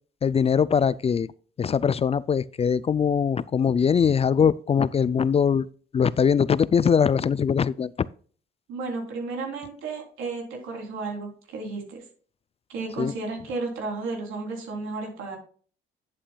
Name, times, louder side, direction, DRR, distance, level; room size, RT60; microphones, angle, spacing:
voice 1, 0.2-1.3 1.6-5.7 5.9-8.1 13.0-13.1, left 7 dB, 30° left, 0.3 m, -22 dB
voice 2, 8.7-12.0 12.7-15.4, right 3 dB, 90° right, 3.5 m, -33 dB
9.8 x 8.6 x 2.3 m
cardioid pair, 90°, 20 cm